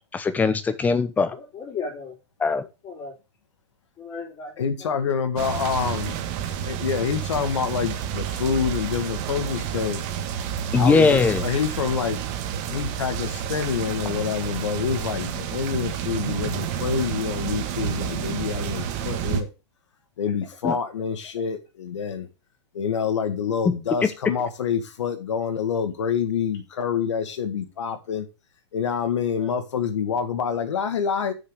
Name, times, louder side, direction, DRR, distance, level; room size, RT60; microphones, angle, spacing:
voice 1, 0.1-1.4 2.4-2.6 10.7-11.4 20.6-20.8 24.0-24.1, left 4 dB, 10° left, 12 dB, 0.8 m, -20 dB
voice 2, 1.3-2.2 2.8-3.2 4.0-5.1 29.4-29.5, left 4 dB, 25° left, 1 dB, 3.7 m, -36 dB
voice 3, 4.6-6.2 6.6-10.0 10.8-19.5 20.2-22.3 22.7-28.3 28.7-31.3, left 7 dB, 85° left, 9 dB, 2.0 m, -27 dB
sound 1, 5.4-19.4, right 8 dB, 40° right, 1.5 m, -30 dB
7.0 x 6.5 x 6.5 m, 0.29 s
hypercardioid pair, 150°, 15 cm